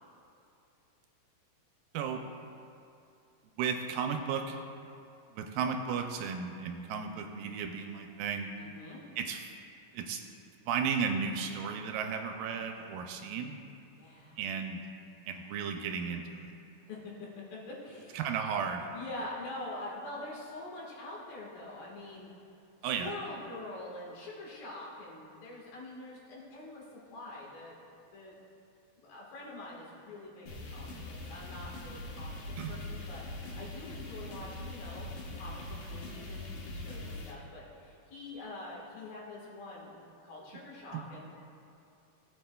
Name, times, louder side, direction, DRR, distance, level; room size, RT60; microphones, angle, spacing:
voice 1, 3.6-4.6 5.4-8.5 9.2-9.5 9.9-10.2 10.7-13.6 14.4-14.8 15.3-16.5 18.1-18.9 22.8-23.1 32.6-32.7 40.9-41.0, right 6 dB, 85° right, 4 dB, 2.2 m, -34 dB
voice 2, 8.6-9.0 14.0-14.4 16.8-18.2 18.9-22.3 23.0-27.8 28.1-28.4 29.0-35.1 35.4-41.3, left 2 dB, 85° left, -4 dB, 3.3 m, -45 dB
sound 1, 30.5-37.3, left 2 dB, 60° left, 1.8 m, -42 dB
16.0 x 7.7 x 2.3 m, 2.6 s
omnidirectional pair, 4.0 m